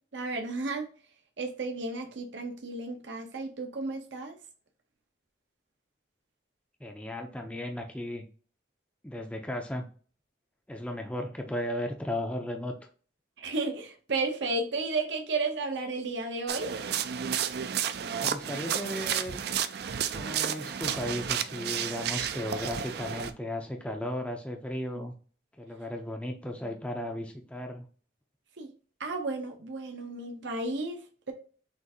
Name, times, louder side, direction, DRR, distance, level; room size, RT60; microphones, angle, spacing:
voice 1, 0.1-0.9 1.4-4.4 13.4-16.7 28.6-28.7 29.0-31.3, right 3 dB, 75° right, 0.8 m, -33 dB
voice 2, 6.8-8.3 9.0-9.9 10.7-12.7 18.2-19.4 20.1-25.1 25.6-27.8, left 1 dB, 5° left, 0.4 m, -35 dB
sound 1, 16.5-23.3, right 8 dB, 55° right, 0.4 m, -32 dB
6.2 x 2.5 x 2.7 m
head